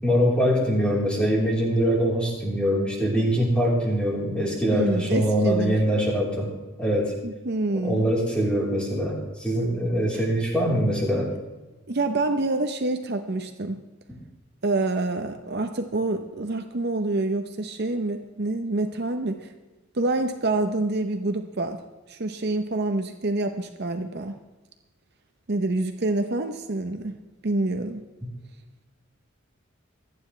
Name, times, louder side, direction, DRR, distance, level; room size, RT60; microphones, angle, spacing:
voice 1, 0.0-6.5 6.8-7.1 7.7-11.3, equal, 5° left, -4 dB, 3.7 m, -23 dB
voice 2, 4.7-6.0 7.2-8.1 10.1-10.2 11.9-13.8 14.6-19.5 19.9-21.8 22.1-24.3 25.5-27.2 27.4-28.0, right 2 dB, 50° right, 7 dB, 0.8 m, -27 dB
26.0 x 9.6 x 3.2 m, 1.2 s
head